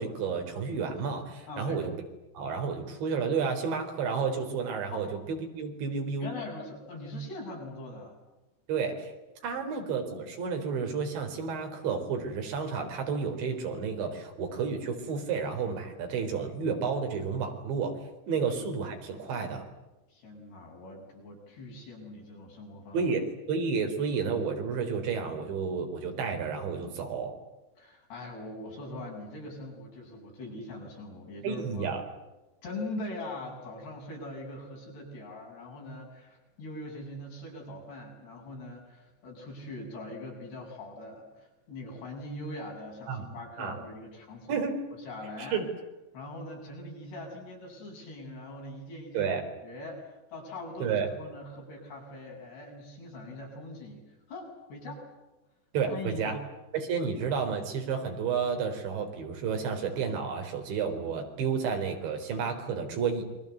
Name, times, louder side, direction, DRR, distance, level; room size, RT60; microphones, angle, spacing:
voice 1, 0.0-1.9 2.3-5.1 5.6-6.3 8.7-9.1 9.4-17.9 18.3-19.7 22.9-23.2 23.5-27.3 31.4-32.0 43.1-43.3 43.6-43.8 44.5-44.8 45.4-45.6 49.1-49.4 50.8-51.1 55.7-56.4 56.7-63.2, right 5 dB, 90° right, 4 dB, 6.4 m, -31 dB
voice 2, 1.5-1.8 4.9-5.1 6.2-8.2 9.4-9.6 18.3-18.5 20.1-23.0 27.8-31.9 32.6-44.7 45.0-45.6 46.1-49.3 49.6-55.0 55.9-56.4 61.4-61.5, left 1 dB, 65° left, 0 dB, 9.9 m, -42 dB
28.5 x 24.0 x 8.1 m, 1.0 s
omnidirectional pair, 5.1 m